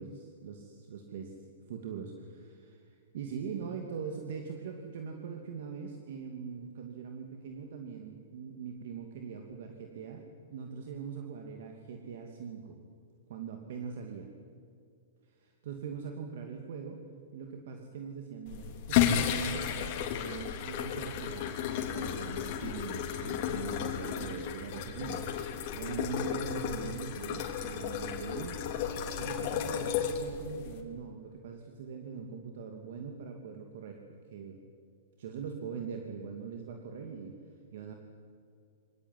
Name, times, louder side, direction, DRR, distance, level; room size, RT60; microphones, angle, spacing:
voice 1, 0.0-1.4 1.7-12.8 13.3-14.3 15.3-17.0 17.3-28.6 29.2-34.0 34.3-34.6 35.2-37.4 37.7-37.9, right 6 dB, 65° right, 4 dB, 2.7 m, -42 dB
sound 1, 18.5-30.8, left 8 dB, 45° left, 3.6 m, -33 dB
25.0 x 18.0 x 9.9 m, 2.3 s
hypercardioid pair, 140°, 0 cm